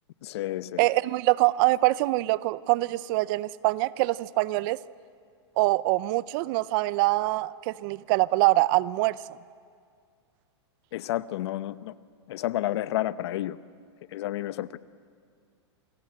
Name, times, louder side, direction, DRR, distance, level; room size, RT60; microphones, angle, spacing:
voice 1, 0.2-0.9 10.9-11.9 12.3-13.6 14.1-14.8, left 14 dB, 65° left, 15 dB, 0.9 m, -30 dB
voice 2, 0.8-4.8 5.6-9.2, right 20 dB, 45° right, 19 dB, 0.6 m, -24 dB
29.0 x 23.5 x 7.8 m, 2.2 s
hypercardioid pair, 125°, 15 cm